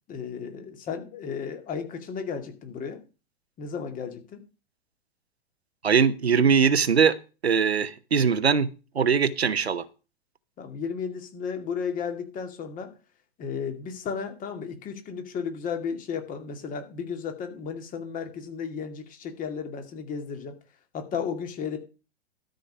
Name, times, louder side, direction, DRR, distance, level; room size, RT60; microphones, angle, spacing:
voice 1, 0.1-3.0 3.6-4.4 10.6-12.9 13.4-20.5 20.9-21.8, left 6 dB, 25° left, 6 dB, 2.3 m, -34 dB
voice 2, 5.8-7.1 7.4-8.7 8.9-9.9, right 6 dB, 90° right, 13 dB, 1.0 m, -21 dB
13.0 x 5.3 x 6.5 m, 0.33 s
hypercardioid pair, 115°, 31 cm